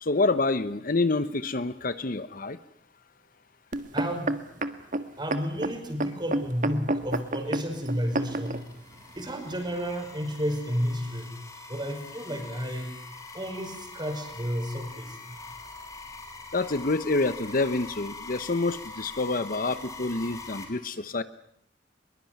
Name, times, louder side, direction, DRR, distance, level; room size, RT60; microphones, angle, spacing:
voice 1, 0.0-2.6 16.5-21.2, left 3 dB, 50° left, 14 dB, 1.0 m, -27 dB
sound 1, 3.7-8.6 9.3-9.4, right 2 dB, 45° right, 1.7 m, -29 dB
voice 2, 3.9-4.4 5.2-8.7 9.2-11.3 11.7-13.0 13.3-15.4, equal, 25° right, 5 dB, 5.5 m, -32 dB
sound 2, 7.2-20.6, left 3 dB, 20° left, 5.9 m, -44 dB
22.5 x 22.5 x 9.4 m, 0.69 s
head